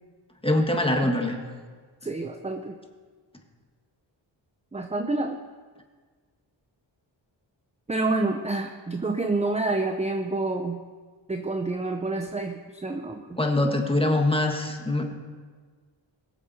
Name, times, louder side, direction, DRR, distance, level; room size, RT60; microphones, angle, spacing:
voice 1, 0.4-1.4 13.4-15.1, left 1 dB, 10° left, 2 dB, 1.6 m, -23 dB
voice 2, 2.0-2.8 4.7-5.4 7.9-10.8 11.3-13.4, right 2 dB, 15° right, 5 dB, 0.7 m, -28 dB
21.5 x 7.3 x 4.2 m, 1.5 s
wide cardioid pair, 85°, 46 cm